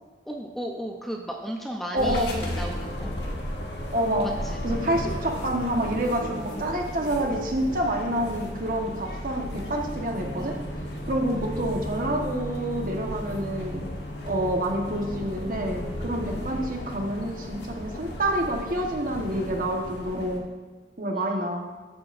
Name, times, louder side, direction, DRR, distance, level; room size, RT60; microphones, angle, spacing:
voice 1, 0.3-3.1 4.4-4.6 21.2-21.3, equal, ahead, 0 dB, 0.6 m, -35 dB
voice 2, 1.9-2.3 3.9-4.3 4.6-10.6 11.0-13.8 14.2-20.4 21.0-21.6, right 1 dB, 45° right, 1 dB, 1.3 m, -28 dB
sound 1, 2.0-20.4, equal, 65° left, 1.3 m, -34 dB
14.5 x 8.8 x 2.6 m, 1.3 s
head